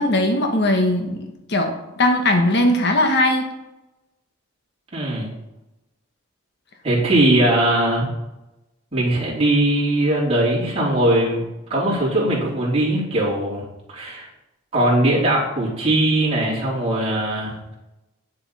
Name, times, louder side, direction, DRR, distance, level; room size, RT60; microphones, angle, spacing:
voice 1, 0.0-3.5, left 1 dB, 50° left, 4 dB, 1.1 m, -19 dB
voice 2, 4.9-5.3 6.8-8.1 8.9-11.4 11.7-14.3 14.7-17.5, right 1 dB, 30° right, -7 dB, 3.3 m, -20 dB
9.7 x 7.2 x 4.2 m, 0.94 s
head